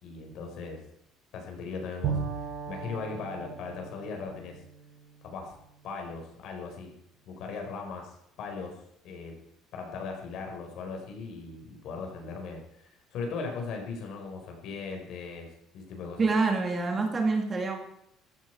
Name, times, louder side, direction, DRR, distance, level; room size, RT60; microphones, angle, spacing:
voice 1, 0.0-0.8 1.3-2.2 2.7-4.6 5.2-5.6 5.8-6.9 7.3-8.8 9.0-9.3 9.7-15.5 15.7-16.2, left 4 dB, 55° left, 2 dB, 4.6 m, -38 dB
Bowed string instrument, 2.0-5.8, right 6 dB, 55° right, 4.6 m, -37 dB
voice 2, 16.2-17.8, right 3 dB, 20° right, 4 dB, 2.0 m, -26 dB
14.5 x 14.0 x 4.7 m, 0.76 s
cardioid pair, 170°, 0 cm